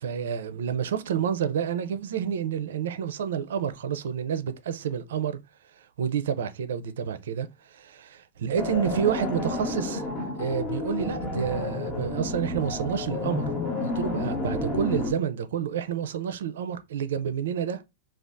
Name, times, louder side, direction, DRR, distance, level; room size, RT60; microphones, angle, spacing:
voice 1, 0.0-5.4 5.8-17.8, right 8 dB, 85° right, 0.5 m, -29 dB
sound 1, 8.6-15.1, left 2 dB, 20° left, 0.8 m, -30 dB
3.4 x 2.4 x 2.5 m
supercardioid pair, 170°, 0 cm